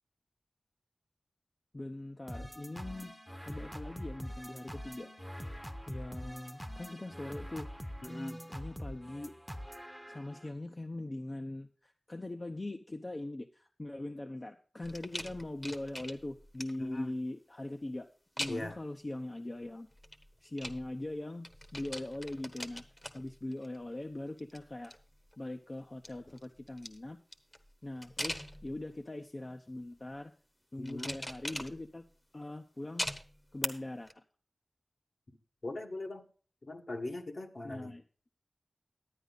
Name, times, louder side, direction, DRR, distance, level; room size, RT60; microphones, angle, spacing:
voice 1, 1.7-3.1 3.5-5.1 5.9-7.7 8.5-9.3 10.1-18.1 18.4-19.9 20.4-22.8 23.1-24.9 25.4-27.2 27.8-30.3 30.7-32.0 32.3-33.1 33.5-34.2 37.6-38.0, left 1 dB, 40° left, 6 dB, 0.7 m, -41 dB
sound 1, 2.3-10.5, equal, ahead, 0.9 m, -44 dB
voice 2, 8.0-8.4 16.8-17.1 18.5-18.8 30.8-31.2 35.6-36.3 36.6-37.9, left 2 dB, 60° left, 3 dB, 1.5 m, -40 dB
sound 2, 14.8-17.0 18.4-18.9 19.9-21.2 21.4-23.9 24.3-25.4 25.8-29.0 29.7-30.1 30.8-32.2 33.0-33.7 34.1-34.2, left 1 dB, 20° left, 1.0 m, -42 dB
11.0 x 9.3 x 4.0 m, 0.40 s
cardioid pair, 50°, 0 cm